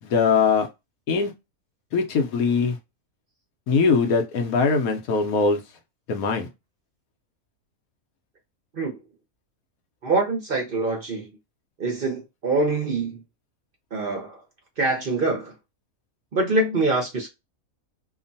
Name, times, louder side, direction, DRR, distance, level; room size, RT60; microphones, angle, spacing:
voice 1, 0.0-0.7 1.1-1.3 1.9-2.8 3.7-5.6 6.1-6.5, left 5 dB, 80° left, 1.2 m, -21 dB
voice 2, 10.0-11.3 11.8-13.2 13.9-14.4 14.8-15.5 16.3-17.3, right 3 dB, 45° right, 0.8 m, -24 dB
2.9 x 2.1 x 2.6 m
omnidirectional pair, 1.5 m